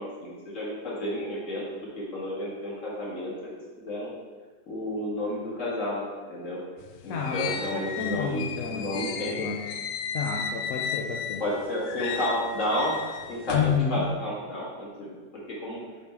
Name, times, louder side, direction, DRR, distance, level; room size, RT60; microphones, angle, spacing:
voice 1, 0.0-1.6 2.0-3.3 3.8-4.1 4.7-6.0 6.3-6.6 7.0-8.5 8.7-9.4 11.4-15.8, left 1 dB, 45° left, -5 dB, 2.0 m, -31 dB
sound 1, 6.8-11.5 11.9-13.8, left 7 dB, 90° left, 1.3 m, -34 dB
voice 2, 7.1-9.6 10.1-11.4 13.5-14.1, left 6 dB, 65° left, 0 dB, 0.9 m, -30 dB
7.2 x 3.7 x 4.4 m, 1.4 s
omnidirectional pair, 1.9 m